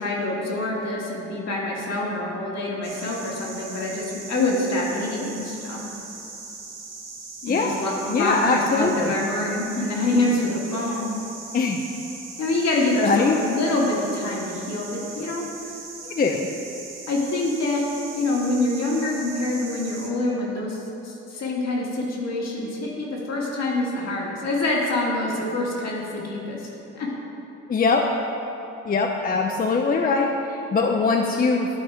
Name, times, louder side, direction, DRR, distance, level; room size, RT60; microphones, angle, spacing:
voice 1, 0.0-5.8 7.4-11.1 12.4-15.5 17.1-26.7 26.9-27.1, left 2 dB, 60° left, -3 dB, 1.8 m, -26 dB
sound 1, 2.8-20.1, right 3 dB, 90° right, 1.4 m, -40 dB
voice 2, 8.1-9.1 11.5-11.8 13.0-13.4 16.2-16.5 27.7-28.1 28.9-31.7, left 4 dB, 30° left, 2 dB, 0.5 m, -22 dB
11.0 x 4.0 x 4.9 m, 3.0 s
cardioid pair, 90°, 30 cm